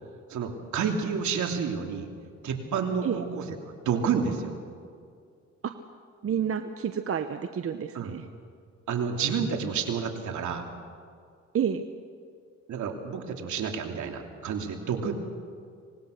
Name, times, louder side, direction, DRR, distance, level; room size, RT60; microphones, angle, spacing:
voice 1, 0.3-2.1 2.4-4.6 7.9-8.1 8.9-10.7 12.7-15.1, right 6 dB, 75° right, 3 dB, 3.1 m, -30 dB
voice 2, 6.2-8.3 11.5-11.9, right 8 dB, 50° right, 8 dB, 1.0 m, -29 dB
25.5 x 20.0 x 6.6 m, 2.2 s
cardioid pair, 90°, 30 cm